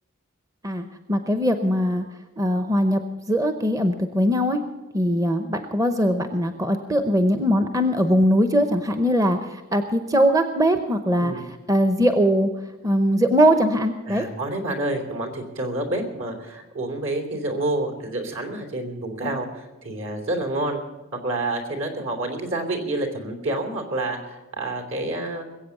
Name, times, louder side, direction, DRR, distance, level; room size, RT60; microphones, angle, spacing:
voice 1, 0.6-2.0 2.4-3.0 3.3-4.6 4.9-11.3 11.7-12.5 12.8-14.3, equal, 15° right, 8 dB, 0.8 m, -21 dB
voice 2, 14.1-20.8 21.1-25.5, right 2 dB, 65° right, 5 dB, 3.2 m, -28 dB
21.5 x 8.4 x 7.1 m, 1.1 s
head